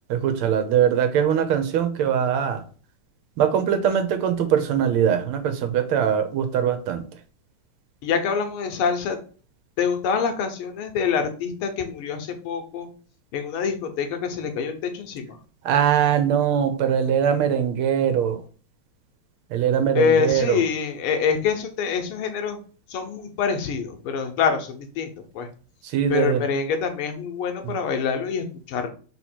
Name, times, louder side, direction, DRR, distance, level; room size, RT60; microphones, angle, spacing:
voice 1, 0.1-2.6 3.4-7.1 15.6-18.4 19.5-20.6 25.8-26.5 27.6-27.7, right 8 dB, 80° right, 1.6 m, -22 dB
voice 2, 8.0-9.2 9.8-12.9 13.3-15.4 19.9-22.6 22.9-25.5 26.1-28.9, left 6 dB, 80° left, 1.7 m, -25 dB
3.9 x 2.9 x 4.4 m
omnidirectional pair, 2.4 m